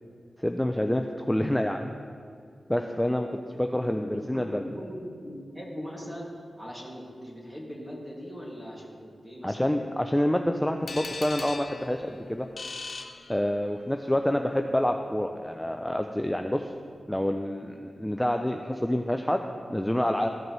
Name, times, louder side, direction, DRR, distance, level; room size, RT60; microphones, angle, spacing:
voice 1, 0.4-1.9 2.7-4.7 9.4-12.5 13.3-16.7 17.1-20.3, left 1 dB, 10° left, 4 dB, 0.4 m, -27 dB
voice 2, 3.9-4.5 4.8-9.8, equal, 15° right, -3 dB, 2.2 m, -41 dB
sound 1, 10.9-13.9, left 3 dB, 65° left, 0.6 m, -39 dB
14.5 x 5.0 x 3.1 m, 2.2 s
cardioid pair, 55°, 0 cm